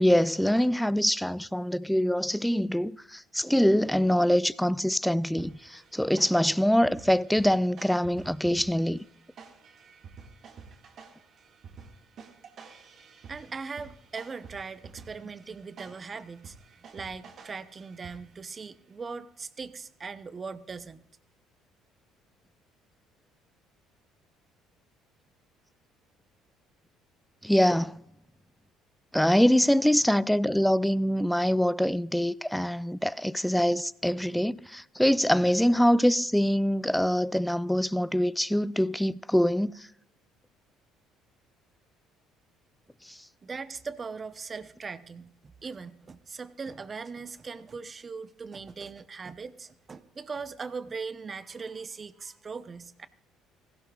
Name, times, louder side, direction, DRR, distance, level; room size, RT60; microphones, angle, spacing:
voice 1, 0.0-9.1 27.4-28.0 29.1-39.9 43.1-43.2, equal, 5° left, 0.4 m, -24 dB
sound 1, 5.4-18.5, right 5 dB, 55° right, 1.9 m, -50 dB
voice 2, 13.3-16.6 16.9-21.0 43.4-53.1, right 5 dB, 30° right, 0.8 m, -40 dB
16.5 x 16.0 x 2.4 m
supercardioid pair, 85°, 0 cm